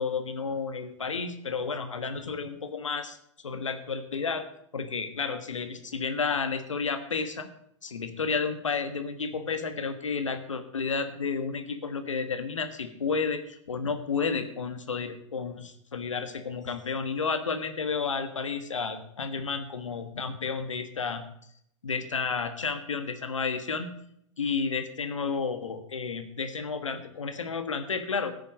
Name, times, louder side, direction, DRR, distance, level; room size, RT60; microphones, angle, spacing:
voice 1, 0.0-3.2 3.4-4.4 4.7-7.5 7.8-21.2 21.8-23.9 24.4-28.3, left 5 dB, 85° left, 8 dB, 1.4 m, -31 dB
14.5 x 6.8 x 6.3 m, 0.70 s
hypercardioid pair, 100°, 16 cm